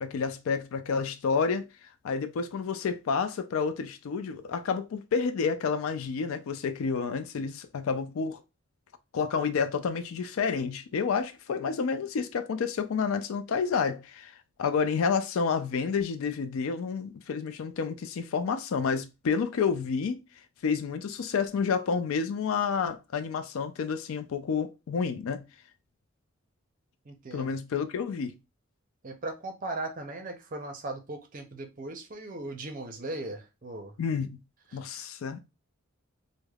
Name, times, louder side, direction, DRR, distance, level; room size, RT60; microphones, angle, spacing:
voice 1, 0.0-1.7 2.0-8.4 9.1-14.3 14.6-20.2 20.6-25.4 27.3-28.4 34.0-34.4 34.7-35.4, left 5 dB, 75° left, 0.4 m, -29 dB
voice 2, 27.0-27.6 29.0-33.9 34.7-35.1, right 2 dB, 40° right, 0.5 m, -38 dB
3.2 x 2.1 x 2.3 m
head